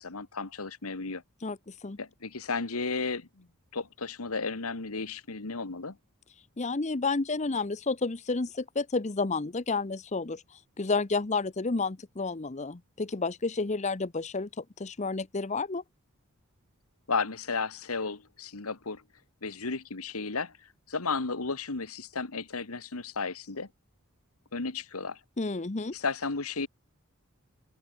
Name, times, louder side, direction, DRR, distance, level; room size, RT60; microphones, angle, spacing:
voice 1, 0.0-1.2 2.0-3.5 3.7-6.0 17.1-19.0 19.4-20.5 20.9-23.7 24.5-25.2 25.9-26.7, left 4 dB, 80° left, 1.7 m, -33 dB
voice 2, 1.4-2.0 6.4-15.8 25.4-25.9, left 3 dB, 35° left, 0.7 m, -31 dB
head